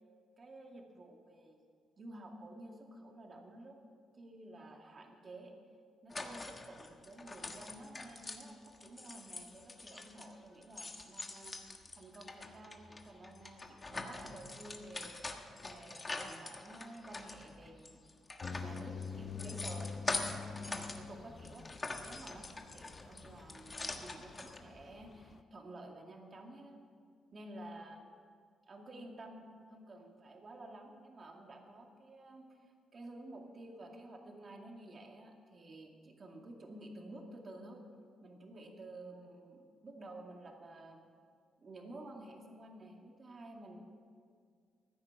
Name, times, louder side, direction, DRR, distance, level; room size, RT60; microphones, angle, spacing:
voice 1, 0.4-1.6 2.0-3.8 4.1-5.6 6.0-18.0 18.5-20.1 20.5-21.7 22.0-26.8 27.3-28.1 28.7-37.8 38.2-41.0 41.6-43.8, right 1 dB, 40° right, 2 dB, 2.3 m, -52 dB
sound 1, 6.1-10.3 10.6-21.0 21.3-24.6, left 2 dB, 25° left, 1.4 m, -44 dB
sound 2, 18.4-25.4, left 5 dB, 40° left, 0.6 m, -46 dB
15.5 x 9.7 x 7.0 m, 2.1 s
cardioid pair, 90°, 0 cm